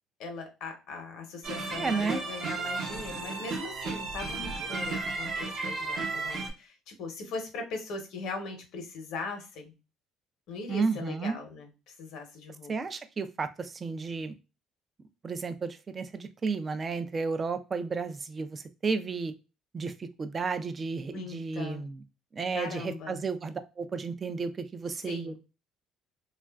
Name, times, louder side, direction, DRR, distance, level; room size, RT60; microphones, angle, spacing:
voice 1, 0.2-9.7 10.5-11.7 12.0-12.7 21.1-21.9 22.5-23.2 25.1-25.4, left 4 dB, 75° left, 4 dB, 0.8 m, -40 dB
sound 1, 1.4-6.5, right 3 dB, 50° right, 0.7 m, -34 dB
voice 2, 1.7-2.2 10.7-11.4 12.7-14.3 15.2-19.3 19.7-22.0 22.3-25.4, right 4 dB, 30° right, 10 dB, 0.3 m, -32 dB
3.0 x 2.4 x 2.3 m, 0.29 s
cardioid pair, 100°, 0 cm